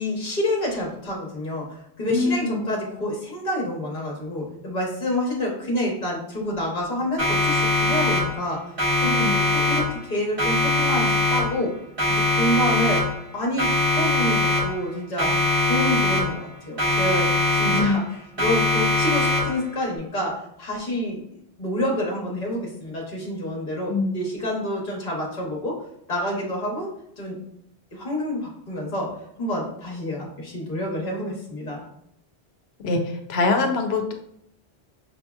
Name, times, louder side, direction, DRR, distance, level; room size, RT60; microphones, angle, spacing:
voice 1, 0.0-8.6 9.0-11.7 12.1-13.0 13.3-15.3 15.6-25.8 26.1-27.4 27.9-29.1 29.4-31.8, left 1 dB, 45° left, -2 dB, 1.1 m, -28 dB
voice 2, 2.1-2.7 9.0-9.4 17.7-18.0 23.9-24.2 32.8-34.1, left 3 dB, 75° left, 5 dB, 0.9 m, -24 dB
Siren, 7.2-8.5 8.8-10.1 10.4-11.7 12.0-13.3 13.6-14.9 15.2-16.5 16.8-18.1 18.4-19.7, left 2 dB, 55° right, 1.9 m, -22 dB
5.5 x 2.7 x 2.3 m, 0.73 s
omnidirectional pair, 1.1 m